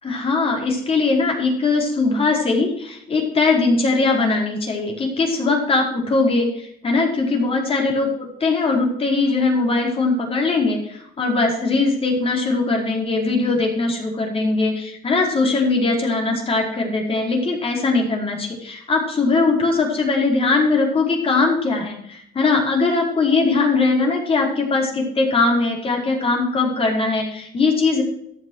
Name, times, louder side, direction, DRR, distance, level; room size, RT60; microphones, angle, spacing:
voice 1, 0.0-28.0, left 3 dB, 35° left, 0 dB, 4.6 m, -20 dB
13.5 x 8.2 x 6.2 m, 0.71 s
cardioid pair, 110°, 17 cm